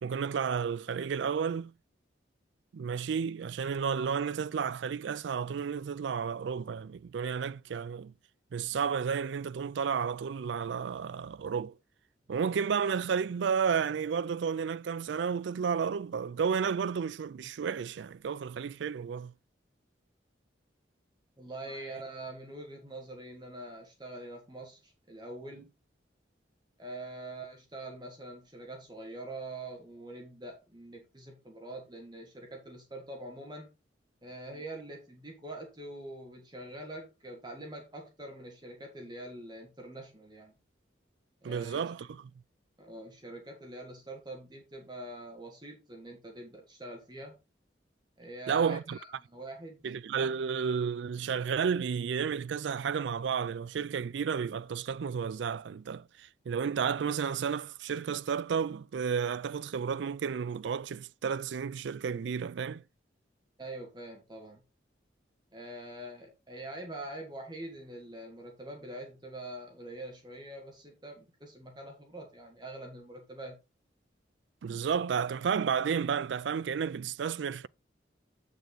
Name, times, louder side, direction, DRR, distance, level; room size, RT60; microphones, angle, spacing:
voice 1, 0.0-1.7 2.7-8.1 8.5-11.7 12.3-19.3 41.4-42.3 48.5-49.0 49.8-62.8 74.6-77.7, right 6 dB, 70° right, 0.4 m, -32 dB
voice 2, 21.4-25.7 26.8-33.7 34.2-40.5 41.4-41.8 42.8-47.4 48.2-49.8 63.6-64.6 65.5-73.6, right 1 dB, 25° right, 1.8 m, -44 dB
7.9 x 6.7 x 3.9 m
head